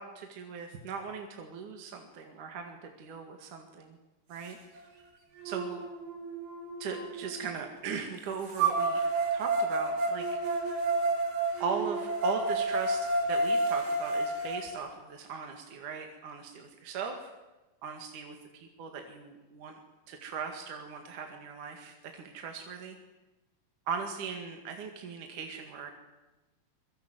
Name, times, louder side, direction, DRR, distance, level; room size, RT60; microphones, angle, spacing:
voice 1, 0.0-4.0 4.3-4.6 5.4-5.8 6.8-9.0 9.3-10.4 11.6-17.3 17.8-19.8 20.1-23.0 23.9-25.9, right 5 dB, 55° right, 4 dB, 3.3 m, -39 dB
sound 1, 4.8-4.9 5.4-7.3 8.6-14.6, right 2 dB, 90° right, 6.8 m, -30 dB
24.5 x 23.0 x 8.1 m, 1.1 s
omnidirectional pair, 4.7 m